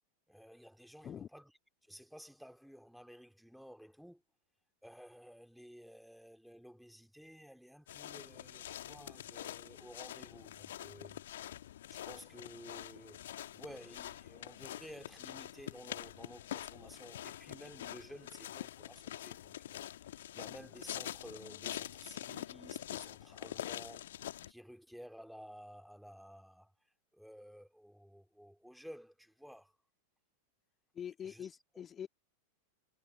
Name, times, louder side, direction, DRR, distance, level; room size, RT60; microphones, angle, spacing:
voice 1, 0.3-1.5 1.9-4.2 4.8-11.2 11.9-26.7 27.1-29.7 31.2-31.5, equal, ahead, 2.8 m, -54 dB
sound 1, 7.9-24.5, left 12 dB, 60° left, 2.0 m, -45 dB
voice 2, 30.9-32.1, left 8 dB, 25° left, 1.7 m, -44 dB
figure-of-eight pair, 90°, 0 cm